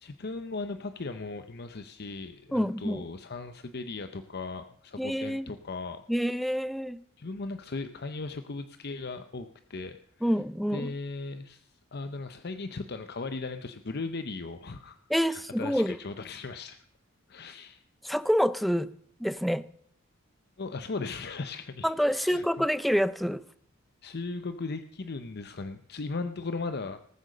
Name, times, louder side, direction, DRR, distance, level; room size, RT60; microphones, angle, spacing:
voice 1, 0.0-6.0 7.2-10.4 10.7-15.0 15.3-16.8 17.3-17.8 20.6-22.7 24.0-27.0, left 3 dB, 50° left, 9 dB, 0.7 m, -37 dB
voice 2, 2.5-3.0 5.0-5.5 6.1-7.0 10.2-10.9 15.1-16.0 18.0-18.9 19.2-19.7 21.8-23.4, equal, ahead, 16 dB, 0.4 m, -27 dB
19.0 x 8.0 x 6.6 m, 0.71 s
head